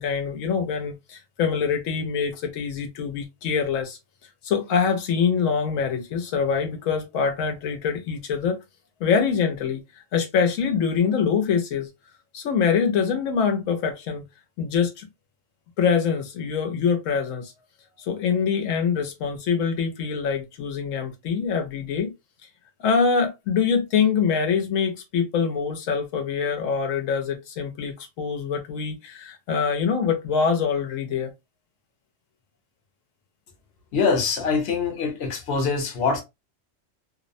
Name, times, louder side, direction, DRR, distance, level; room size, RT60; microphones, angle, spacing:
voice 1, 0.0-4.0 4.4-8.6 9.0-9.8 10.1-11.9 12.3-14.2 14.6-15.1 15.8-17.5 18.0-22.1 22.8-31.3, left 6 dB, 85° left, 1.0 m, -24 dB
voice 2, 33.9-36.2, left 5 dB, 60° left, 1.0 m, -24 dB
2.6 x 2.0 x 2.5 m
omnidirectional pair, 1.3 m